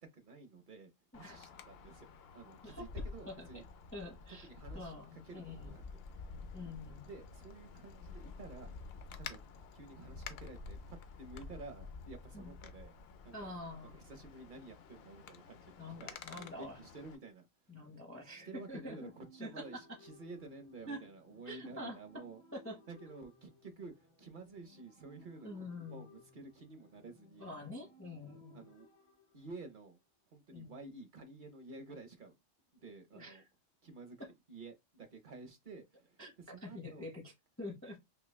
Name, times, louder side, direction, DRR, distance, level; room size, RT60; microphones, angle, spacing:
voice 1, 0.0-3.6 4.3-6.0 7.1-8.7 9.2-9.4 9.7-13.0 13.2-13.6 13.9-17.5 18.2-22.4 22.9-27.5 28.5-28.9 29.3-30.0 30.3-32.3 32.7-33.4 33.8-34.2 34.5-37.1, right 3 dB, 50° right, 0.7 m, -51 dB
Wind, 1.1-17.2, left 4 dB, 60° left, 0.7 m, -50 dB
voice 2, 3.3-3.6 3.9-4.5 4.7-5.7 6.5-7.1 12.3-12.5 13.3-14.0 15.8-16.8 17.7-19.1 19.4-19.8 20.9-21.0 21.5-22.0 22.5-22.8 25.4-26.0 27.4-28.7 30.5-30.7 33.1-33.4 34.2-34.3 36.2-36.3 36.6-37.2 37.6-38.0, left 1 dB, 15° left, 0.5 m, -46 dB
sound 1, 18.2-30.0, left 1 dB, 90° left, 1.7 m, -62 dB
5.6 x 2.1 x 2.2 m
omnidirectional pair, 1.3 m